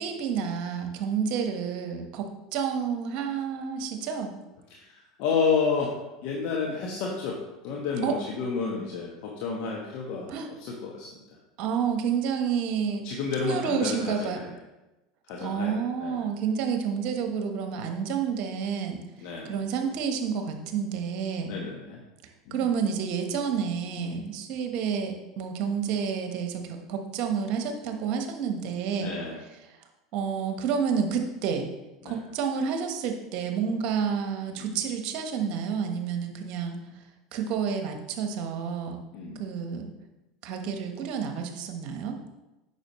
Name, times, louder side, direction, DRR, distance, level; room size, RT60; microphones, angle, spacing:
voice 1, 0.0-2.2 2.5-4.3 8.0-8.1 10.3-10.5 11.6-13.0 13.4-14.4 15.4-19.0 19.5-21.5 22.5-29.1 30.1-31.7 32.0-36.8 37.3-39.0 39.4-39.9 40.4-42.2, right 6 dB, 55° right, 5 dB, 1.2 m, -29 dB
voice 2, 4.7-7.4 7.6-10.3 10.6-11.1 13.0-14.5 15.3-16.3 19.2-19.6 21.5-22.0 22.5-22.7 24.0-24.3 29.0-29.4 32.0-32.2 34.5-34.8 39.1-39.4, left 5 dB, 60° left, -1 dB, 1.2 m, -31 dB
8.8 x 6.0 x 3.1 m, 1.0 s
hypercardioid pair, 90°, 2 cm